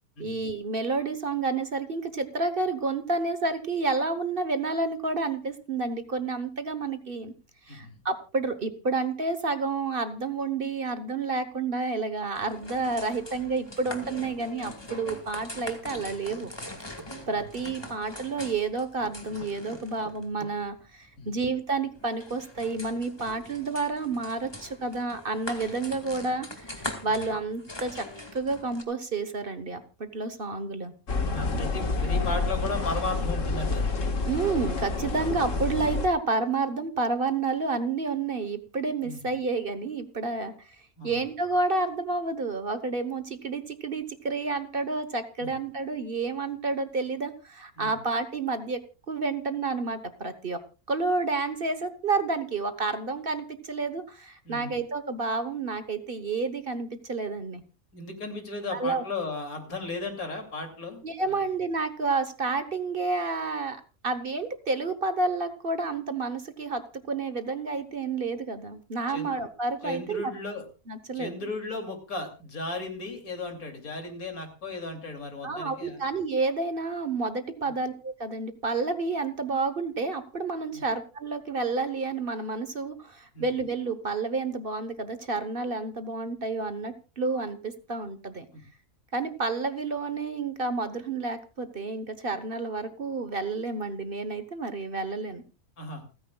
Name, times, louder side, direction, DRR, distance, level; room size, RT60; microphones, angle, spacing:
voice 1, 0.2-7.3 7.7-16.5 17.3-28.0 28.3-30.9 34.3-40.7 41.0-48.8 49.1-50.6 50.9-57.6 58.7-59.0 61.0-66.8 67.1-70.3 70.9-71.4 75.4-88.4 89.1-95.4, right 3 dB, 40° right, 11 dB, 1.2 m, -30 dB
sound 1, 12.3-28.8, left 1 dB, 15° left, 1.9 m, -42 dB
sound 2, 16.0-17.4 19.0-20.6, right 2 dB, 20° right, 0.8 m, -45 dB
sound 3, 31.1-36.1, left 3 dB, 60° left, 2.0 m, -28 dB
voice 2, 31.3-33.9 35.0-35.2 39.0-39.2 41.0-41.2 45.4-45.5 47.8-47.9 54.4-54.7 57.9-61.4 69.1-69.3 69.8-70.6 71.1-76.0 80.7-80.8 83.3-83.5 88.5-88.6 95.8-96.0, left 2 dB, 80° left, 4 dB, 3.2 m, -35 dB
28.5 x 9.9 x 2.3 m, 0.32 s
omnidirectional pair, 1.5 m